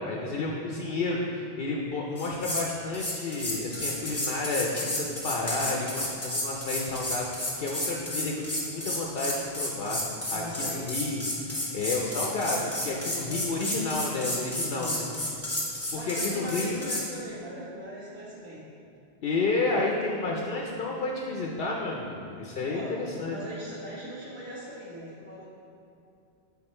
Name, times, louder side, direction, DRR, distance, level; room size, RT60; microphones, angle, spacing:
voice 1, 0.0-10.0 10.3-11.2 11.5-15.0 15.9-16.9 19.2-23.4, left 3 dB, 65° left, -1 dB, 0.8 m, -31 dB
sound 1, 2.2-2.7 2.9-17.1, left 1 dB, 15° left, 1.0 m, -32 dB
voice 2, 10.3-10.9 13.2-13.7 14.6-15.2 15.9-18.7 22.5-25.5, equal, 10° right, -10 dB, 1.1 m, -40 dB
7.8 x 3.6 x 4.3 m, 2.6 s
omnidirectional pair, 1.0 m